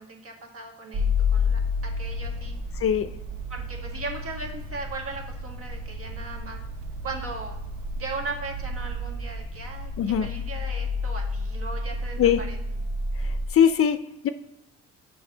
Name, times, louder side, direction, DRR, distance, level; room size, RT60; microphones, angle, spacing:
voice 1, 0.0-2.6 3.5-6.6 7.0-7.6 8.0-12.6, right 3 dB, 50° right, 2 dB, 1.7 m, -38 dB
sound 1, 0.9-13.5, left 3 dB, 85° right, 1.3 m, -30 dB
voice 2, 10.0-10.3 12.2-12.4 13.5-14.3, left 9 dB, 50° left, 12 dB, 0.5 m, -21 dB
7.0 x 3.4 x 5.4 m, 0.89 s
cardioid pair, 90°, 30 cm